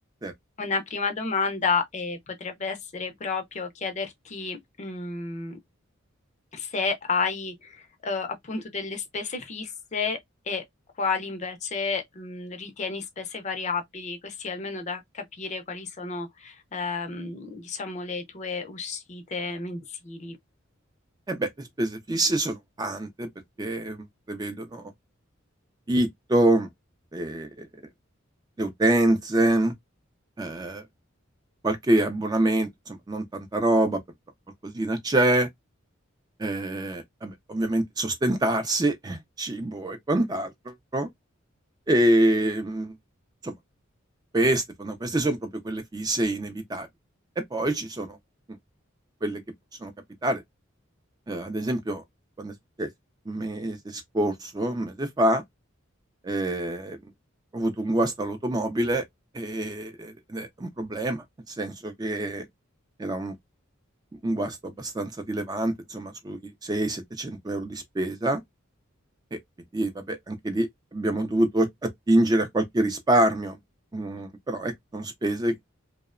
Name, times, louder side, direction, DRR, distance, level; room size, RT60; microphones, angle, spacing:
voice 1, 0.6-5.6 6.5-10.2 10.5-10.6 11.0-20.4, left 4 dB, 35° left, 0.5 m, -31 dB
voice 2, 21.3-23.3 23.6-24.9 25.9-26.7 27.1-27.7 28.6-29.7 30.4-30.8 31.6-34.0 34.6-35.5 36.4-41.1 41.9-42.9 43.4-43.5 44.3-46.9 47.4-48.2 49.2-49.4 49.8-49.9 50.2-50.4 51.3-52.0 52.4-52.5 52.8-52.9 53.3-55.4 56.2-57.0 57.5-59.0 59.3-62.4 63.0-63.4 64.2-68.4 69.3-69.4 69.7-73.6 73.9-75.6, right 1 dB, 20° right, 0.3 m, -26 dB
2.7 x 2.0 x 2.4 m
head